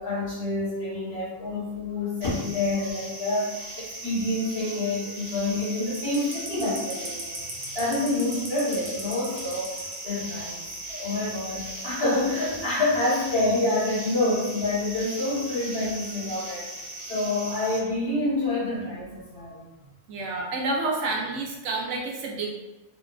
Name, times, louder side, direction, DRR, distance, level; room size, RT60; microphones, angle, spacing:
voice 1, 0.0-7.4 7.7-10.6 10.9-16.7 17.1-19.6, left 2 dB, 55° left, -11 dB, 1.4 m, -27 dB
sound 1, 2.2-17.8, right 1 dB, 50° right, 0.8 m, -38 dB
voice 2, 20.1-22.5, right 3 dB, 80° right, -1 dB, 0.9 m, -29 dB
2.9 x 2.2 x 2.3 m, 1.1 s
omnidirectional pair, 1.2 m